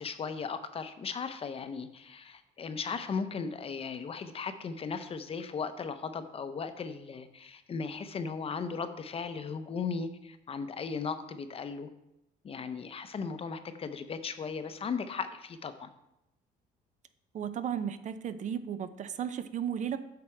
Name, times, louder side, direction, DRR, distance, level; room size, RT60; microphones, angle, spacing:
voice 1, 0.0-11.9 12.4-15.9, left 5 dB, 35° left, 10 dB, 0.7 m, -37 dB
voice 2, 17.3-20.0, right 8 dB, 45° right, 11 dB, 0.5 m, -34 dB
8.4 x 5.8 x 4.4 m, 0.85 s
cardioid pair, 110°, 17 cm